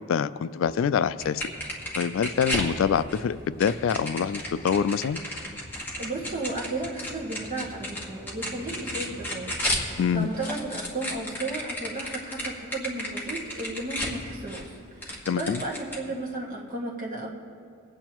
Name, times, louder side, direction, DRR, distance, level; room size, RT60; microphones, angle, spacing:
voice 1, 0.1-1.4 2.0-5.2 10.0-10.3 15.3-15.6, left 7 dB, 70° left, 15 dB, 0.3 m, -25 dB
sound 1, 0.6-10.0, equal, 15° right, 0.6 m, -48 dB
sound 2, 1.2-3.2 3.6-9.9 10.2-14.7 15.0-16.0, left 1 dB, 10° left, 1.5 m, -33 dB
voice 2, 6.0-17.3, right 2 dB, 40° right, -3 dB, 1.7 m, -34 dB
23.5 x 9.0 x 3.0 m, 2.4 s
head